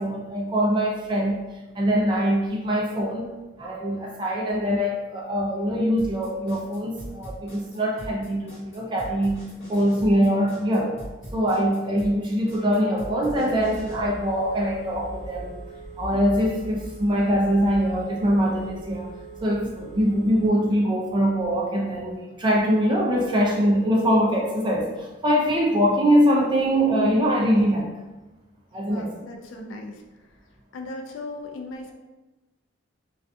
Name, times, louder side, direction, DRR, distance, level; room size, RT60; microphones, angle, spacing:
voice 1, 0.0-1.4 1.7-3.3 3.6-11.0 11.3-15.5 16.0-19.1 19.4-27.9 28.7-29.1, equal, 20° right, -2 dB, 0.3 m, -23 dB
sound 1, 6.0-14.0, equal, 30° left, 1.0 m, -39 dB
Telephone, 13.5-20.5, right 2 dB, 5° right, 0.9 m, -40 dB
voice 2, 28.9-30.4 30.7-31.9, left 2 dB, 70° left, 3 dB, 0.3 m, -38 dB
2.3 x 2.2 x 2.5 m, 1.1 s
head